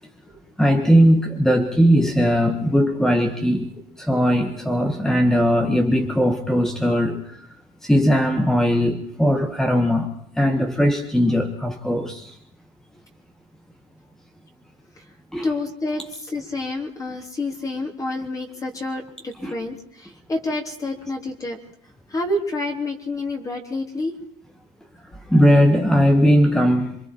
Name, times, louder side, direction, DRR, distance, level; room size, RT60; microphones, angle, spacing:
voice 1, 0.6-3.7 4.0-7.4 7.8-12.4 15.3-15.4 19.4-19.5 25.3-27.0, equal, 5° left, 5 dB, 1.5 m, -19 dB
voice 2, 15.4-21.6 22.1-24.2, left 2 dB, 20° left, 2 dB, 3.3 m, -28 dB
27.5 x 24.5 x 4.6 m, 0.69 s
cardioid pair, 140°, 17 cm